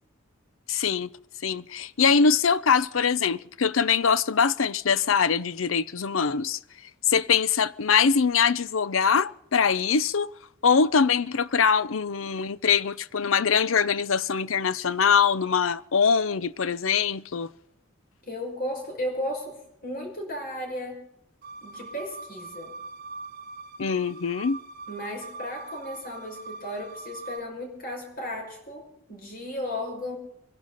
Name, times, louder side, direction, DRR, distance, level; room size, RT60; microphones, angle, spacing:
voice 1, 0.7-1.1 1.4-6.6 7.1-10.3 10.6-17.5 23.8-24.6, left 6 dB, 80° left, 0.6 m, -23 dB
voice 2, 18.2-21.1 21.6-22.8 24.9-30.2, left 1 dB, 45° left, 5.9 m, -35 dB
sound 1, 21.4-27.4, right 3 dB, 45° right, 1.3 m, -42 dB
25.0 x 11.5 x 4.1 m
head